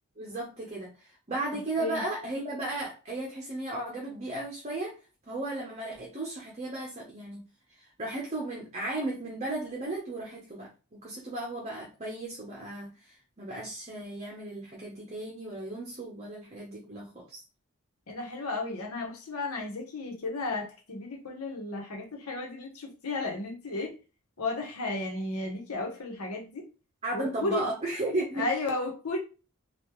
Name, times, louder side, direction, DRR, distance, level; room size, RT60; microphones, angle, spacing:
voice 1, 0.2-5.0 5.3-7.4 7.7-17.4 27.0-28.5, right 2 dB, 30° right, 0.8 m, -35 dB
voice 2, 18.1-24.0 24.4-26.7 27.1-27.6 28.4-29.2, left 2 dB, 85° left, 1.0 m, -33 dB
3.6 x 2.4 x 3.0 m
head